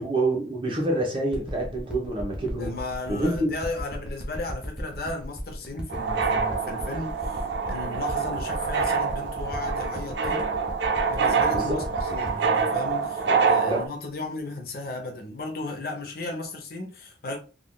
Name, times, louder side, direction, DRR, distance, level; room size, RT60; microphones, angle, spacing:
voice 1, 0.0-2.8 3.1-3.5 11.5-11.8 13.2-13.4 13.6-13.9, right 1 dB, 30° right, 1.1 m, -27 dB
sound 1, 1.3-14.1 14.7-14.8, equal, 5° right, 0.7 m, -36 dB
voice 2, 2.6-7.4 7.7-10.4 11.1-17.4, left 2 dB, 55° left, 0.7 m, -35 dB
sound 2, 5.9-13.9, right 5 dB, 75° right, 0.5 m, -26 dB
3.6 x 2.5 x 2.2 m
head